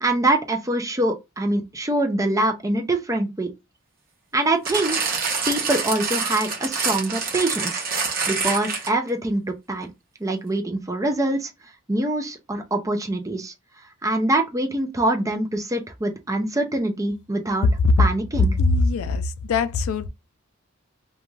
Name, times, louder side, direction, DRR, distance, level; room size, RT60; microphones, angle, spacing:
voice 1, 0.0-3.5 4.3-5.1 5.5-7.8 8.3-9.4 9.7-9.9 10.2-11.5 11.9-13.5 14.0-17.7 18.0-18.6, right 1 dB, 15° right, 0.5 m, -24 dB
sound 1, 4.7-9.1 9.8-9.9, right 5 dB, 45° right, 0.9 m, -26 dB
voice 2, 18.6-20.1, left 3 dB, 75° left, 0.4 m, -21 dB
2.5 x 2.3 x 3.0 m
head